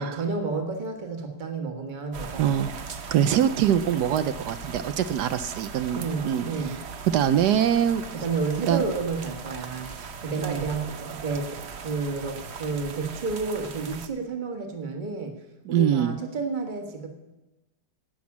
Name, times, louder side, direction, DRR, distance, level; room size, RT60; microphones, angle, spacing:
voice 1, 0.0-2.8 5.9-6.8 8.1-15.4 15.7-17.1, right 4 dB, 30° right, 4 dB, 1.6 m, -31 dB
sound 1, 2.1-14.1, right 5 dB, 50° right, 0.9 m, -39 dB
voice 2, 2.4-2.7 3.1-6.5 7.1-8.0 8.7-8.8 10.4-10.6 15.7-16.2, right 10 dB, 75° right, 12 dB, 1.1 m, -23 dB
18.0 x 6.1 x 7.2 m, 1.0 s
omnidirectional pair, 1.8 m